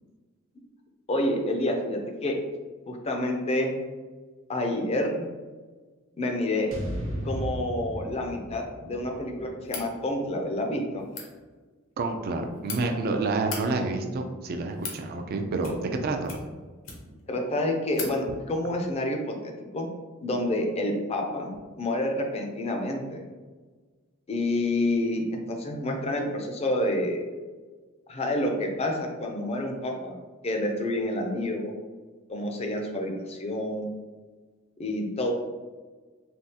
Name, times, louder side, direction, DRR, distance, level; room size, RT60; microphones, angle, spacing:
voice 1, 1.1-2.3 2.9-3.7 4.5-5.3 6.2-6.7 7.2-11.1 17.3-19.9 20.2-21.5 21.8-23.2 24.3-25.2 25.5-27.3 28.1-30.1 30.4-31.7 32.3-33.9 34.8-35.3, left 1 dB, 30° left, 3 dB, 0.4 m, -28 dB
sound 1, 6.7-10.9, equal, 70° right, 0.9 m, -36 dB
sound 2, 9.6-9.9 11.0-11.3 12.2-12.8 13.4-13.6 14.4-15.0 15.6-16.0 16.2-17.2 17.5-17.6 17.9-18.1, left 4 dB, 70° left, 0.7 m, -38 dB
voice 2, 12.0-16.4, right 3 dB, 50° right, 5 dB, 0.3 m, -28 dB
3.4 x 2.3 x 2.7 m, 1.4 s
head